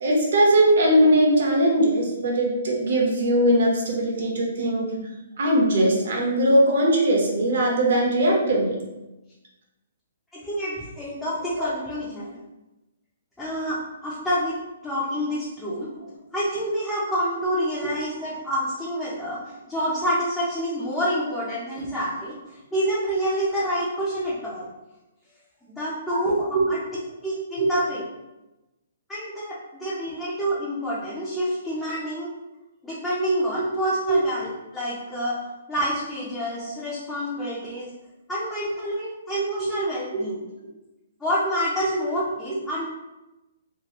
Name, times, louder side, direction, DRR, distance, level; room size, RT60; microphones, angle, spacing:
voice 1, 0.0-5.0 5.4-8.7 11.6-11.7 26.1-26.2 26.5-26.6 27.6-27.7 34.1-34.2, right 1 dB, 60° right, -2 dB, 0.8 m, -20 dB
voice 2, 10.3-12.4 13.4-14.5 14.8-15.9 16.3-24.7 25.8-26.8 27.2-28.0 29.1-32.3 32.8-34.5 34.7-35.4 35.7-37.9 38.3-40.4 41.2-42.8, equal, 5° left, -9 dB, 0.4 m, -27 dB
2.9 x 2.5 x 2.9 m, 1.0 s
hypercardioid pair, 170°, 0 cm